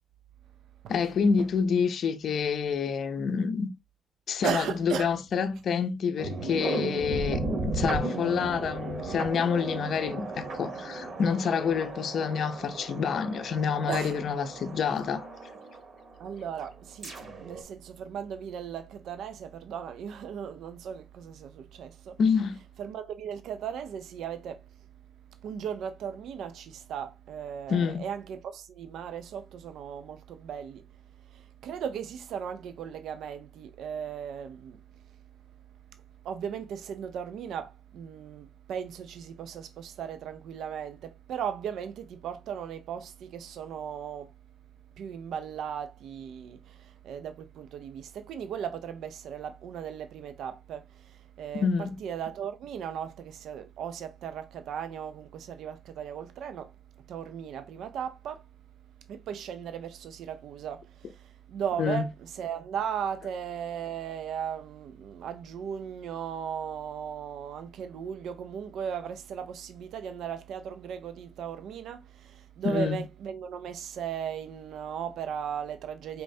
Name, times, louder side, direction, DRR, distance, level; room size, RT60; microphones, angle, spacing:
voice 1, 0.9-3.7 4.3-15.3 22.2-22.6 27.7-28.1 51.5-52.0 61.8-62.0 72.6-73.0, left 6 dB, 55° left, 0.5 m, -28 dB
voice 2, 4.4-5.1 13.9-14.2 16.2-22.2 22.8-24.7 25.4-30.9 31.3-35.0 36.2-44.3 45.0-58.4 59.1-76.2, right 8 dB, 80° right, 0.4 m, -37 dB
sound 1, 6.2-16.3 16.8-17.6, right 2 dB, 45° right, 0.9 m, -35 dB
4.4 x 3.2 x 2.5 m
cardioid pair, 165°, 0 cm